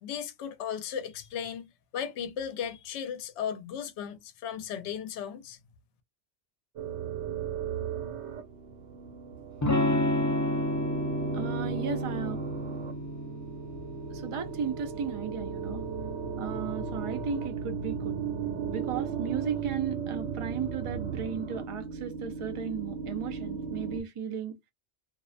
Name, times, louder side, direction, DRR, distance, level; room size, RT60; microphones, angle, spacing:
voice 1, 0.0-1.7 1.9-5.6, left 8 dB, 75° left, 0.9 m, -36 dB
sound 1, 6.8-24.0, right 6 dB, 80° right, 1.0 m, -36 dB
Electric guitar / Strum, 9.6-15.3, left 1 dB, 30° left, 0.3 m, -31 dB
voice 2, 11.3-12.4 14.1-15.8 16.4-18.2 18.7-24.5, right 6 dB, 45° right, 0.4 m, -35 dB
2.5 x 2.0 x 2.4 m
omnidirectional pair, 1.2 m